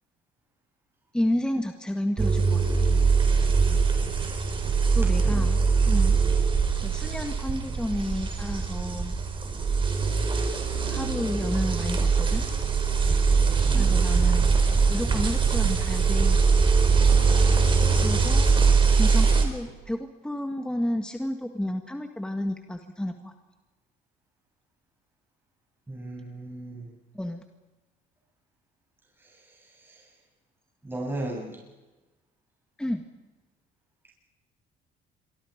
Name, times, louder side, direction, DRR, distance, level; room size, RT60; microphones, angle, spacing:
voice 1, 1.1-2.9 4.9-6.2 6.8-9.2 10.9-12.5 13.8-14.5 14.9-16.4 18.0-18.5 18.9-23.3 27.1-27.4 32.8-33.0, left 1 dB, 5° left, 5 dB, 1.8 m, -31 dB
sound 1, 2.2-19.5, right 5 dB, 30° right, 4.4 m, -22 dB
voice 2, 5.2-5.5 13.7-14.0 25.9-26.9 29.2-30.1 30.8-31.6, right 1 dB, 15° right, -2 dB, 7.9 m, -36 dB
27.0 x 24.5 x 5.2 m, 1.1 s
cardioid pair, 110°, 17 cm